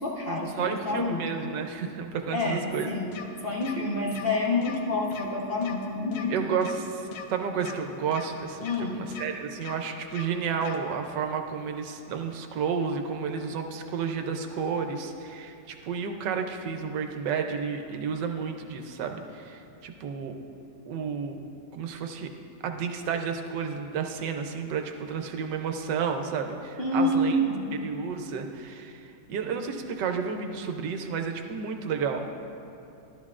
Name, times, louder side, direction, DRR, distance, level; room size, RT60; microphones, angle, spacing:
voice 1, 0.0-1.2 2.3-3.1 3.4-6.6 8.6-9.0 26.8-27.7, left 1 dB, 40° left, -4 dB, 1.0 m, -28 dB
voice 2, 0.6-2.9 6.3-7.0 7.3-20.4 20.8-21.4 21.7-22.3 22.6-27.4 27.7-32.3, right 6 dB, 75° right, 5 dB, 1.3 m, -31 dB
sound 1, 3.1-3.2 3.6-3.7 4.1-4.2 4.6-4.8 5.1-5.2 5.6-5.7 6.1-6.2 6.6-6.8 7.1-7.2 7.6-7.7 8.1-8.2 8.6-8.8 9.1-9.2 9.6-9.7 10.1-10.2 10.6-10.8, left 8 dB, 90° left, 1.4 m, -40 dB
12.5 x 12.5 x 2.4 m, 2.6 s
omnidirectional pair, 1.9 m